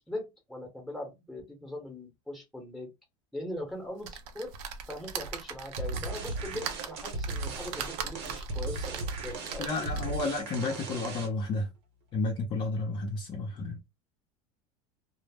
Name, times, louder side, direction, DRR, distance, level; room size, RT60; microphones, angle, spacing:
voice 1, 0.0-2.9 3.3-4.5 4.9-9.9, left 1 dB, ahead, 0.9 m, -40 dB
sound 1, 4.0-10.3 10.8-10.9 11.2-11.3, right 6 dB, 60° right, 0.5 m, -40 dB
sound 2, 5.8-11.5, right 3 dB, 80° right, 0.9 m, -37 dB
voice 2, 9.6-11.7 12.1-13.7, left 3 dB, 35° left, 0.6 m, -31 dB
2.0 x 2.0 x 3.3 m
supercardioid pair, 135°, 13 cm